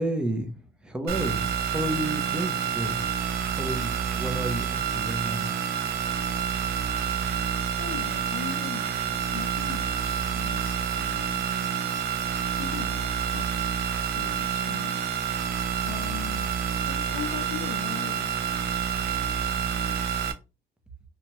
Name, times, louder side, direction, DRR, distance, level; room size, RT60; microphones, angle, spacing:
voice 1, 0.0-3.1 3.5-5.5, right 1 dB, 5° right, 0.5 m, -31 dB
sound 1, 1.1-20.3, right 8 dB, 55° right, 0.5 m, -28 dB
voice 2, 7.7-11.5 12.6-13.7 14.1-15.0 15.8-16.5 16.9-18.3, left 11 dB, 75° left, 0.5 m, -40 dB
2.8 x 2.2 x 2.9 m
cardioid pair, 140°, 19 cm